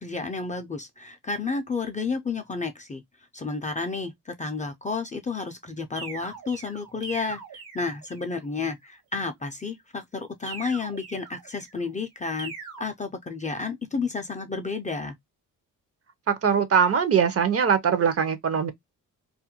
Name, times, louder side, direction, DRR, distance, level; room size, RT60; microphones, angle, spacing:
voice 1, 0.0-3.0 3.3-4.1 4.4-7.4 7.7-12.5 12.8-15.1, left 4 dB, 20° left, 0.4 m, -31 dB
sound 1, 6.0-8.4 10.5-11.8 12.4-12.8, right 5 dB, 80° right, 1.1 m, -41 dB
voice 2, 16.3-18.7, right 7 dB, 40° right, 0.6 m, -22 dB
2.4 x 2.1 x 2.7 m
cardioid pair, 80°, 36 cm